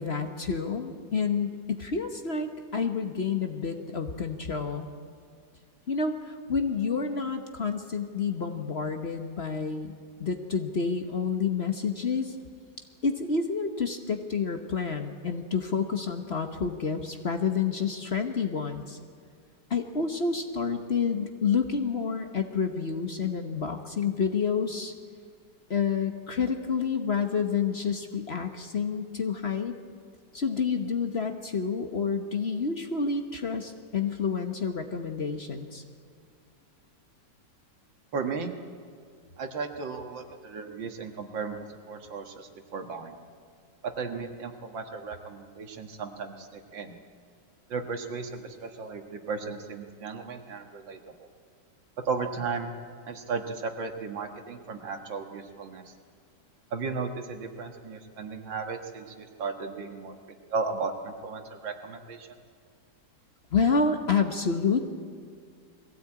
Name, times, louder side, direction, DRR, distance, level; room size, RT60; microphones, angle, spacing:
voice 1, 0.0-4.9 5.9-9.9 10.2-12.4 13.0-19.0 19.7-24.9 25.7-29.8 30.3-35.8 63.5-64.9, left 5 dB, 40° left, 5 dB, 1.2 m, -29 dB
voice 2, 38.1-38.5 39.4-43.2 43.8-46.9 47.7-51.3 52.1-52.7 53.1-55.9 56.7-60.2 60.5-62.3, right 4 dB, 85° right, 5 dB, 2.3 m, -35 dB
21.5 x 16.5 x 8.8 m, 2.2 s
omnidirectional pair, 2.0 m